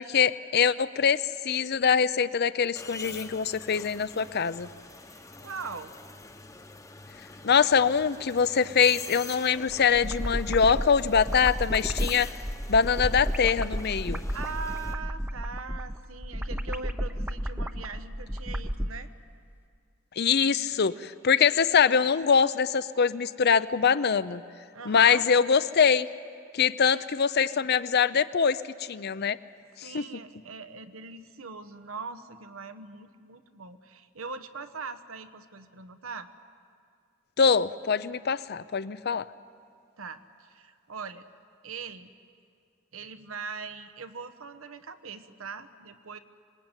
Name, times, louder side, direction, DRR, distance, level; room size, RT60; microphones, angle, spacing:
voice 1, 0.0-4.7 7.4-12.3 12.7-14.2 20.2-24.4 24.9-26.1 26.5-29.4 29.8-30.1 37.4-39.2, left 6 dB, 50° left, 15 dB, 0.6 m, -23 dB
sound 1, 2.8-14.9, left 3 dB, 15° left, 1.0 m, -45 dB
voice 2, 5.1-5.9 14.1-19.1 24.7-25.3 26.8-27.1 29.3-29.4 29.8-36.3 40.0-41.2 41.6-42.1 42.9-46.2, right 5 dB, 80° right, 11 dB, 1.1 m, -41 dB
sound 2, 9.7-18.9, equal, 10° right, 0.7 m, -32 dB
25.5 x 20.5 x 9.0 m, 2.3 s
head